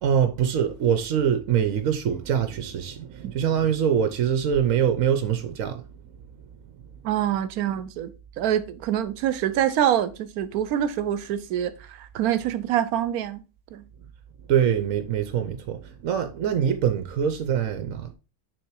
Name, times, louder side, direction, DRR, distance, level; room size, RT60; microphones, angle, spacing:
voice 1, 0.0-6.5 6.9-7.0 14.5-18.1, right 8 dB, 70° right, 1.1 m, -24 dB
voice 2, 7.0-8.1 8.4-13.4 13.7-13.8, right 10 dB, 90° right, 1.1 m, -25 dB
6.3 x 3.7 x 4.6 m
omnidirectional pair, 1.5 m